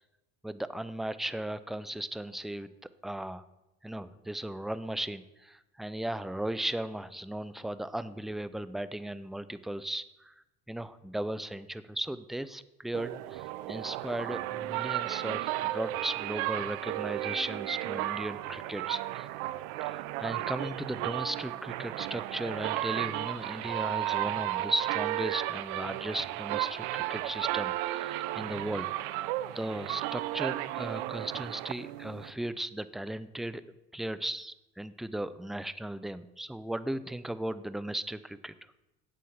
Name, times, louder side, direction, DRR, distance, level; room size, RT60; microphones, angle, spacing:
voice 1, 0.4-2.7 3.0-3.4 3.8-10.3 10.7-19.3 19.8-28.9 29.5-33.6 33.9-38.5, right 1 dB, ahead, 15 dB, 0.5 m, -36 dB
sound 1, 12.9-32.3, right 15 dB, 75° right, 0.6 m, -34 dB
8.3 x 7.7 x 7.1 m, 0.96 s
supercardioid pair, 80°, 35 cm